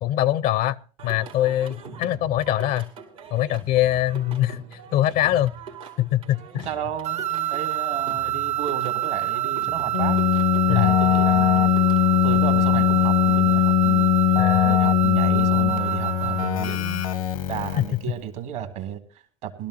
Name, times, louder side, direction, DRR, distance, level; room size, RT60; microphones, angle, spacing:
voice 1, 0.0-2.9 3.3-5.5 6.0-6.7 10.7-10.9 14.4-14.8 17.8-17.9, left 13 dB, 55° left, 0.5 m, -23 dB
Singing, 1.0-13.4, right 4 dB, 85° right, 2.6 m, -43 dB
voice 2, 6.5-11.7 12.2-14.1 14.6-17.1 17.5-19.7, right 10 dB, 70° right, 2.3 m, -33 dB
sound 1, 7.0-16.6, right 13 dB, 40° right, 0.8 m, -27 dB
Keyboard (musical), 9.9-18.1, left 12 dB, 85° left, 1.0 m, -20 dB
20.5 x 13.0 x 2.9 m
hypercardioid pair, 60°, 17 cm